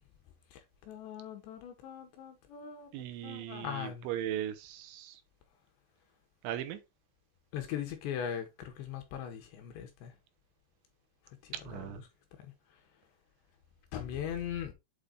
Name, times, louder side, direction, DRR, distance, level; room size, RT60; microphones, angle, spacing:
voice 1, 0.9-2.9 3.2-4.0 7.5-10.1 13.9-14.7, left 9 dB, 75° left, 2.9 m, -39 dB
voice 2, 2.9-5.2 6.4-6.8 11.6-12.0, right 11 dB, 80° right, 3.0 m, -38 dB
8.3 x 3.5 x 3.8 m
omnidirectional pair, 5.6 m